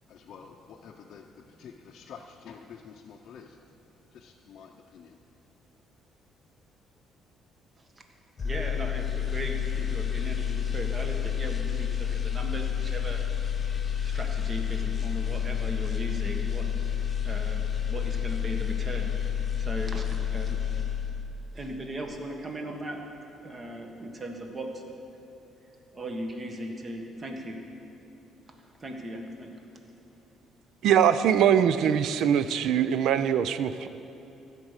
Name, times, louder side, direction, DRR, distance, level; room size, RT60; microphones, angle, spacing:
voice 1, 0.1-1.3 1.6-3.6 4.1-5.2, left 6 dB, 65° left, 0 dB, 0.6 m, -48 dB
sound 1, 8.4-21.5 21.8-22.1, left 8 dB, 35° left, 0.9 m, -29 dB
voice 2, 8.4-13.2 14.0-16.7 17.2-20.0 20.3-20.6 21.5-23.0 23.4-24.8 25.9-27.6 28.8-29.5, right 1 dB, 30° right, 3 dB, 1.4 m, -37 dB
voice 3, 30.8-33.9, right 9 dB, 75° right, 13 dB, 0.4 m, -22 dB
15.5 x 5.2 x 6.4 m, 2.9 s
cardioid pair, 100°, 0 cm